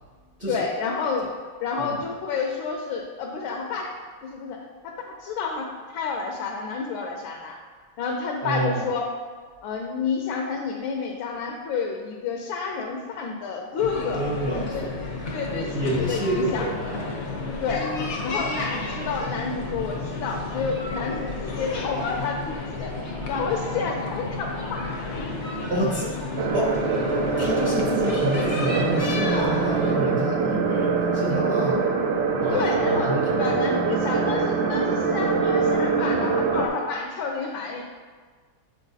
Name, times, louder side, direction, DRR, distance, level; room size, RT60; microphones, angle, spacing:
voice 1, 0.5-1.3 1.6-3.9 4.2-7.6 8.0-9.1 9.6-14.9 15.3-16.7 17.6-17.9 18.2-24.8 32.5-37.8, left 5 dB, 80° left, 1 dB, 1.4 m, -30 dB
voice 2, 8.4-8.8 14.1-14.9 15.5-17.1 25.7-26.8 27.4-31.8 32.3-33.6, right 1 dB, 35° right, -7 dB, 0.8 m, -28 dB
sound 1, 13.8-29.9, left 3 dB, 60° left, 0.7 m, -32 dB
sound 2, 26.4-36.7, right 4 dB, 75° right, 1.3 m, -24 dB
8.2 x 4.4 x 2.7 m, 1.5 s
omnidirectional pair, 2.1 m